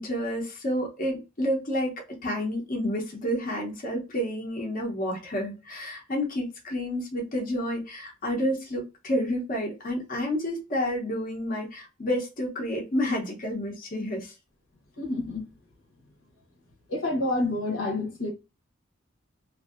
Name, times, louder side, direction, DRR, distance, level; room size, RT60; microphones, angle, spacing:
voice 1, 0.0-1.9 2.2-14.3, equal, 45° left, 0.9 m, -30 dB
voice 2, 15.0-15.4 16.9-18.3, left 2 dB, 85° left, 1.2 m, -28 dB
2.8 x 2.7 x 2.5 m
head